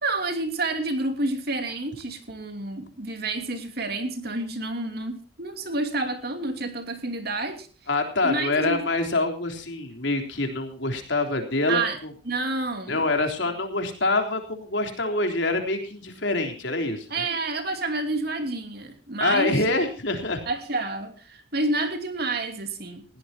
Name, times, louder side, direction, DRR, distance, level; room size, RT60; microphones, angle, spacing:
voice 1, 0.0-7.7 8.2-8.8 11.7-12.0 12.3-13.0 17.1-19.6 20.5-23.0, right 2 dB, 50° right, 6 dB, 2.8 m, -29 dB
voice 2, 7.9-12.1 12.9-17.1 19.2-20.4, left 2 dB, 60° left, 4 dB, 3.6 m, -25 dB
20.0 x 16.5 x 2.8 m, 0.36 s
head